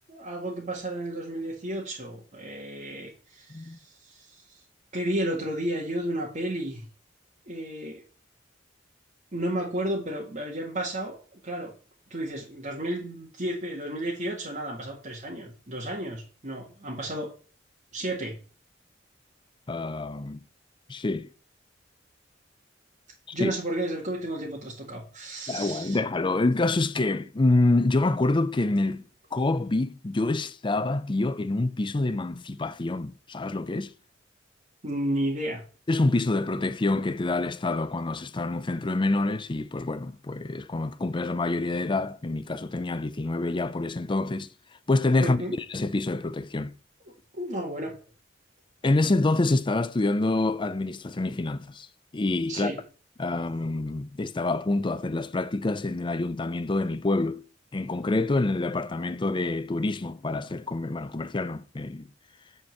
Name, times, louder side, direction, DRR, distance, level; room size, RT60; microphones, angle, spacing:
voice 1, 0.0-4.6 4.9-6.8 7.5-8.0 9.3-11.7 12.1-17.3 17.9-18.3 23.3-26.0 34.8-35.6 45.2-45.6 47.3-48.0 52.5-52.8, right 1 dB, 40° right, 1.9 m, -32 dB
voice 2, 19.7-20.4 20.9-21.3 23.4-23.5 25.5-29.0 29.3-33.9 35.9-44.5 44.9-45.4 45.7-46.7 48.8-51.9 52.1-52.7 53.2-57.4 57.7-62.1, left 2 dB, 25° left, 0.5 m, -26 dB
9.3 x 4.3 x 7.2 m
head